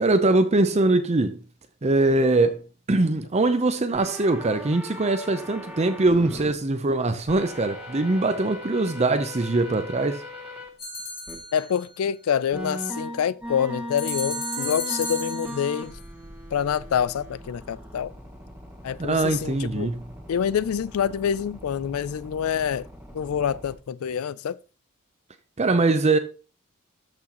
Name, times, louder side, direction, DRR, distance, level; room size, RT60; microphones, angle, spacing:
voice 1, 0.0-1.4 1.8-2.6 2.9-10.2 19.0-20.0 25.6-26.2, right 2 dB, 30° right, 0.6 m, -22 dB
sound 1, 3.9-6.5 7.3-10.7 11.3-11.4 12.5-23.7, left 1 dB, 5° right, 1.7 m, -39 dB
sound 2, 10.8-11.8 14.0-15.8, left 1 dB, 30° left, 5.2 m, -34 dB
voice 2, 11.5-16.0 16.5-18.1 18.8-19.9 20.3-22.9 23.1-24.6, left 8 dB, 85° left, 0.4 m, -26 dB
13.0 x 6.1 x 3.0 m
head